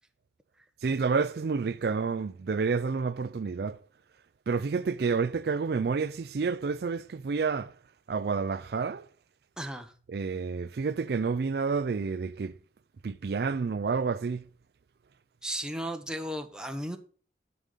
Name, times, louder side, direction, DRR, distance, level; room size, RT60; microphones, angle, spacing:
voice 1, 0.8-3.8 4.5-7.7 8.1-9.1 10.1-12.6 13.0-14.5, right 5 dB, 60° right, 0.4 m, -29 dB
voice 2, 9.6-9.9 15.4-17.0, right 1 dB, 5° right, 0.9 m, -35 dB
11.0 x 5.2 x 5.6 m
head